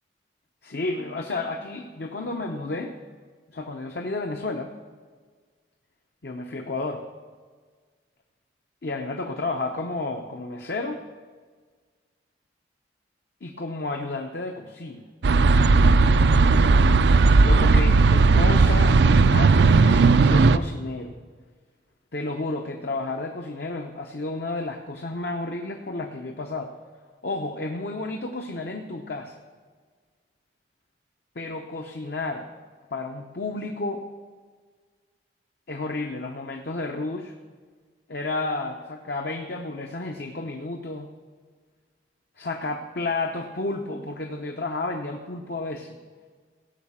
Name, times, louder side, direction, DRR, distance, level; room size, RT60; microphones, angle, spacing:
voice 1, 0.6-2.9 3.5-4.7 6.2-7.0 8.8-11.0 13.4-15.0 17.4-21.1 22.1-26.7 27.2-29.4 31.4-32.5 32.9-34.0 35.7-37.3 38.1-41.1 42.4-46.0, left 2 dB, 60° left, 3 dB, 0.7 m, -31 dB
sound 1, 15.2-20.6, right 3 dB, 65° right, 0.4 m, -16 dB
16.5 x 5.6 x 7.3 m, 1.6 s
head